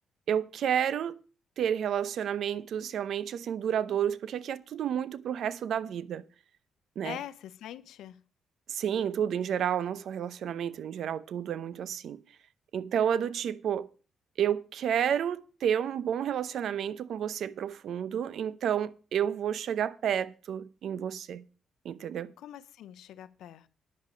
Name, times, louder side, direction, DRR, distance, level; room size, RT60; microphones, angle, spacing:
voice 1, 0.3-1.2 1.6-6.2 7.0-7.2 8.7-12.2 12.7-13.9 14.4-21.4 21.8-22.3, right 9 dB, 70° right, 0.7 m, -30 dB
voice 2, 7.0-8.2 22.4-23.7, left 11 dB, 80° left, 0.7 m, -43 dB
10.5 x 8.3 x 5.1 m
cardioid pair, 90°, 0 cm